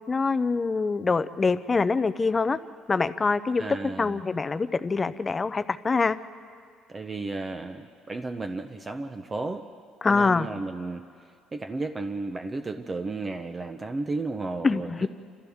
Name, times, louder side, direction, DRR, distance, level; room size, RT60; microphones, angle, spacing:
voice 1, 0.1-2.6 2.9-3.6 4.0-6.2 10.0-10.5 14.6-15.1, left 4 dB, 20° left, 13 dB, 0.5 m, -24 dB
voice 2, 3.6-4.2 6.9-9.6 10.1-11.1 11.5-15.1, right 3 dB, 20° right, 7 dB, 0.7 m, -33 dB
29.5 x 26.5 x 3.6 m, 2.1 s
cardioid pair, 145°, 0 cm